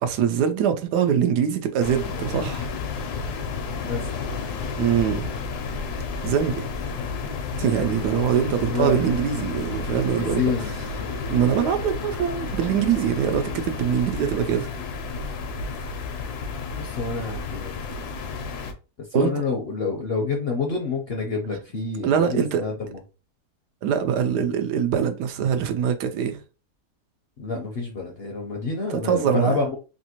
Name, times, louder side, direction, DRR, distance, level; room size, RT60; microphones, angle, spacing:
voice 1, 0.0-2.7 4.8-5.3 6.2-6.7 7.6-10.4 11.3-14.7 19.1-19.3 22.0-22.6 23.8-26.4 29.0-29.6, right 8 dB, 80° right, 1.2 m, -23 dB
sound 1, 1.8-18.7, left 5 dB, 75° left, 1.1 m, -31 dB
sound 2, 2.7-17.7, left 2 dB, 55° right, 1.2 m, -44 dB
voice 2, 8.7-9.0 10.2-11.1 16.8-17.9 19.0-23.0 27.4-29.8, left 4 dB, 55° left, 0.7 m, -28 dB
3.3 x 2.7 x 2.8 m
omnidirectional pair, 1.7 m